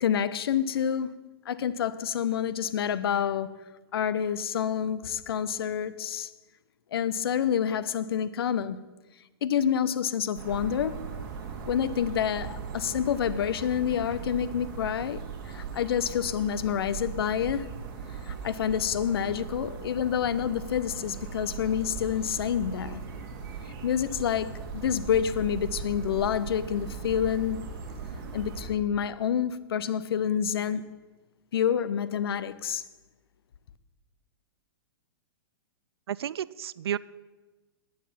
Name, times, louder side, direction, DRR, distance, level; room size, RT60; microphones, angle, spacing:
voice 1, 0.0-3.5 3.9-6.3 6.9-8.8 9.4-11.1 11.6-17.7 18.2-23.0 23.7-27.6 28.3-30.9 31.5-32.8, left 8 dB, 75° left, 0.7 m, -28 dB
sound 1, 10.4-28.7, right 5 dB, 50° right, 2.0 m, -39 dB
voice 2, 36.1-37.0, right 10 dB, 85° right, 0.4 m, -32 dB
9.8 x 9.4 x 5.8 m
hypercardioid pair, 140°, 13 cm